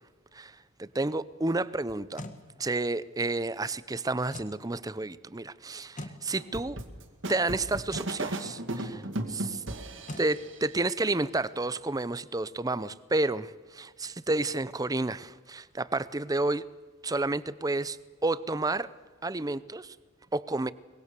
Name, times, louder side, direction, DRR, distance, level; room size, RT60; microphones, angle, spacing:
voice 1, 0.3-2.2 2.6-6.8 7.3-9.6 10.2-16.6 17.0-18.0 18.2-18.9 19.2-20.0 20.3-20.7, right 2 dB, 15° right, 17 dB, 0.6 m, -30 dB
sound 1, 1.9-2.4 4.3-4.6 6.0-6.2 7.9-8.1 10.1-10.3, left 1 dB, 40° left, 1.8 m, -41 dB
sound 2, 6.3-10.7, right 1 dB, 60° right, 2.2 m, -36 dB
23.5 x 22.0 x 6.9 m, 1.4 s
head